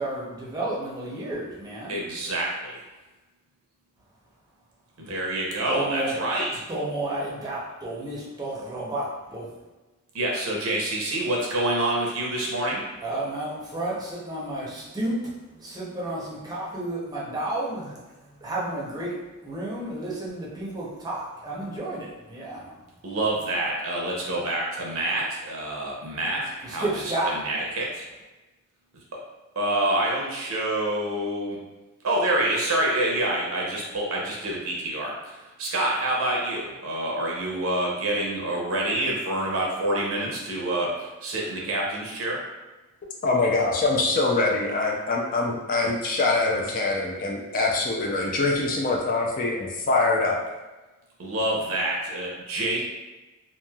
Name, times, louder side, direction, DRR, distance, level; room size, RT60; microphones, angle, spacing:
voice 1, 0.0-2.0 5.0-5.1 5.7-6.1 6.7-9.0 9.3-9.5 13.0-18.0 18.4-19.1 19.4-22.7 26.6-27.4, right 2 dB, 20° right, -6 dB, 0.6 m, -31 dB
voice 2, 1.9-2.8 5.0-6.6 10.1-12.9 23.0-28.0 28.9-29.2 29.6-31.6 32.0-42.4 51.2-52.8, right 1 dB, 75° right, -2 dB, 0.7 m, -27 dB
voice 3, 43.2-50.4, left 3 dB, 40° left, -1 dB, 0.4 m, -24 dB
3.1 x 2.6 x 2.3 m, 1.1 s
head